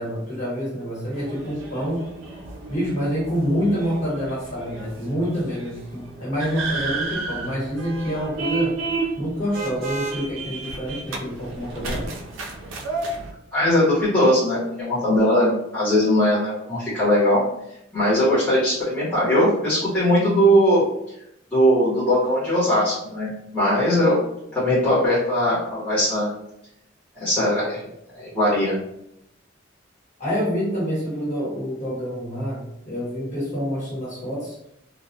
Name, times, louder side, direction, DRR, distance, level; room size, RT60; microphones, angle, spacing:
voice 1, 0.0-2.0 2.7-8.7 9.2-12.0 30.2-34.6, equal, 40° left, -7 dB, 1.2 m, -27 dB
sound 1, 1.1-13.3, right 3 dB, 90° right, 0.4 m, -32 dB
voice 2, 13.5-17.4 17.9-20.8 21.5-24.2 24.5-26.3 27.2-27.8 28.1-28.7, equal, 10° left, -12 dB, 0.9 m, -20 dB
2.2 x 2.1 x 2.6 m, 0.80 s
head